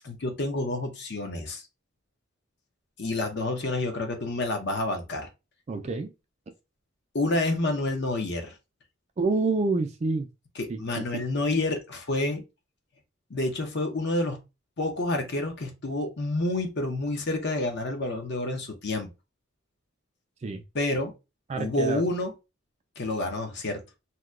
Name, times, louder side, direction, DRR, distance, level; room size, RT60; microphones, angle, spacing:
voice 1, 0.0-1.7 3.0-5.3 7.1-8.6 10.6-12.4 13.3-14.4 14.8-19.1 20.7-21.1 21.6-22.3 23.0-23.8, left 2 dB, 55° left, 0.8 m, -28 dB
voice 2, 5.7-6.1 9.2-10.3 10.7-11.0 20.4-20.6 21.5-22.0, right 3 dB, 35° right, 0.3 m, -27 dB
2.8 x 2.2 x 3.6 m
head